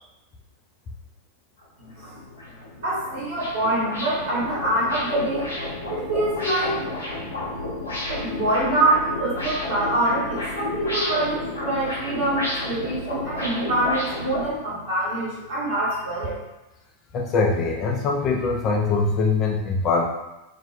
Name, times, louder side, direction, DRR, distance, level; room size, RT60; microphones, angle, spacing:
sound 1, 1.6-1.7 2.1-14.5, left 2 dB, 75° left, 0.6 m, -31 dB
voice 1, 1.8-2.2 2.8-5.5 5.8-6.8 8.1-16.4, right 1 dB, 55° right, -8 dB, 1.2 m, -25 dB
voice 2, 17.1-20.0, left 4 dB, 35° left, 1 dB, 0.3 m, -22 dB
2.4 x 2.1 x 2.4 m, 0.99 s
figure-of-eight pair, 90°, 0 cm